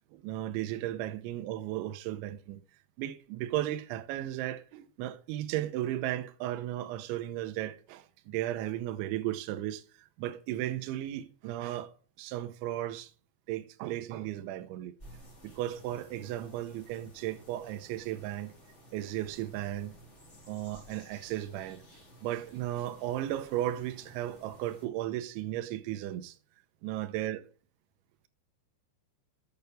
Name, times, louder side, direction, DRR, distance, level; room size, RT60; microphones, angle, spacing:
voice 1, 0.1-2.6 3.0-9.8 10.2-11.9 12.2-13.1 13.5-14.9 15.4-18.5 18.9-20.0 20.5-21.8 22.2-26.4 26.8-27.4, right 13 dB, 80° right, 2.9 m, -35 dB
sound 1, 15.0-24.9, equal, 20° left, 2.1 m, -55 dB
8.7 x 6.8 x 8.0 m
omnidirectional pair, 6.0 m